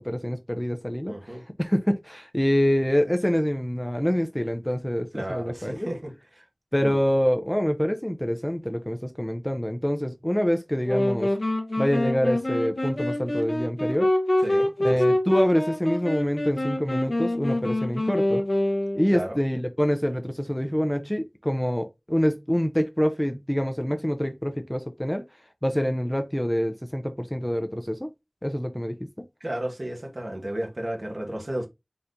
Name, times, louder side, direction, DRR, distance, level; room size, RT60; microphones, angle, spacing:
voice 1, 0.0-5.9 6.7-11.3 11.8-14.1 14.8-18.4 18.9-25.2 25.6-28.1 28.4-29.2, equal, 10° left, 0.6 m, -26 dB
voice 2, 1.1-1.4 5.1-6.1 6.8-6.9 14.4-15.2 19.1-19.4 29.4-31.7, right 1 dB, 60° right, 1.3 m, -33 dB
sound 1, 10.8-19.3, left 1 dB, 70° left, 1.1 m, -25 dB
4.4 x 3.8 x 2.6 m
wide cardioid pair, 45°, 0 cm